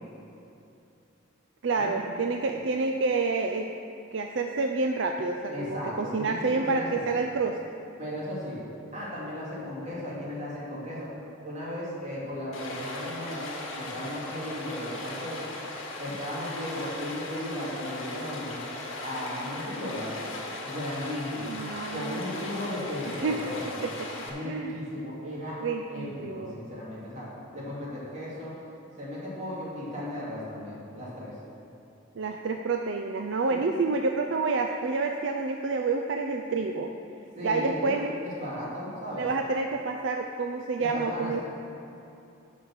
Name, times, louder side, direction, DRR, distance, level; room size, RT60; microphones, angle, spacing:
voice 1, 1.6-3.7 4.1-7.6 21.5-22.2 23.1-23.4 23.6-23.9 24.4-24.7 25.6-26.6 32.2-36.9 37.4-38.1 39.2-41.4, right 3 dB, 65° right, 4 dB, 0.4 m, -28 dB
voice 2, 5.5-7.1 8.0-8.6 8.9-11.1 11.4-13.5 13.8-15.4 16.0-18.6 19.0-20.1 20.6-21.5 21.9-23.8 24.2-25.6 25.9-28.5 29.0-31.3 33.5-33.6 37.4-39.3 40.8-41.4, left 1 dB, 35° right, -7 dB, 2.6 m, -36 dB
Stream, 12.5-24.3, left 2 dB, 75° left, 1.6 m, -38 dB
12.0 x 5.1 x 6.0 m, 2.7 s
head